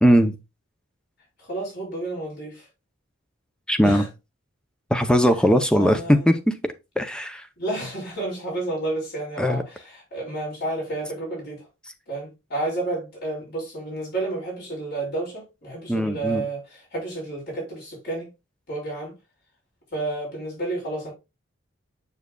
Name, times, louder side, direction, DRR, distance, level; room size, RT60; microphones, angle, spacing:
voice 1, 0.0-0.4 3.7-4.1 4.9-6.5 7.0-7.5 9.4-9.6 15.9-16.4, equal, 5° left, 0.5 m, -19 dB
voice 2, 1.4-2.7 3.8-4.1 5.7-6.4 7.6-11.7 12.1-18.3 18.7-19.1 19.9-21.1, right 2 dB, 55° left, 4.7 m, -31 dB
7.2 x 6.6 x 2.2 m
head